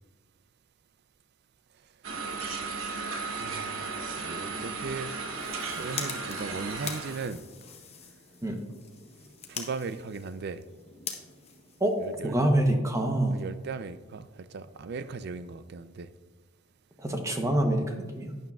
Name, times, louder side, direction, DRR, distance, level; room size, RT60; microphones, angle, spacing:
sound 1, 2.0-7.3, right 4 dB, 70° right, 1.1 m, -35 dB
voice 1, 3.3-5.1 5.7-7.4 9.5-10.6 12.0-12.4 13.3-16.1, right 4 dB, 50° right, 13 dB, 0.4 m, -37 dB
sound 2, 5.2-12.5, left 6 dB, 30° left, 0.9 m, -43 dB
voice 2, 12.2-13.3 17.0-18.4, right 1 dB, 15° right, 4 dB, 0.7 m, -26 dB
11.5 x 9.2 x 2.3 m, 1.3 s
head